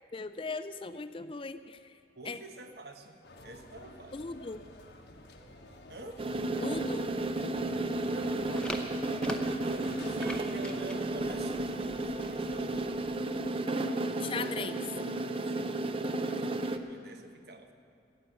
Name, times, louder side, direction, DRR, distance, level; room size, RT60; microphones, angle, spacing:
voice 1, 0.1-2.0 2.2-2.4 4.1-4.7 6.5-7.1 14.2-14.9, left 4 dB, 30° left, 12 dB, 0.4 m, -38 dB
voice 2, 2.1-4.2 5.9-6.2 8.0-8.9 9.6-12.9 15.3-17.7, right 2 dB, 60° right, 6 dB, 1.1 m, -47 dB
sound 1, 3.2-10.5, left 1 dB, 70° left, 1.2 m, -52 dB
sound 2, 6.2-16.8, right 2 dB, 30° right, 0.5 m, -33 dB
sound 3, 8.4-13.5, left 1 dB, 5° left, 0.7 m, -45 dB
14.0 x 9.2 x 7.9 m, 2.5 s
head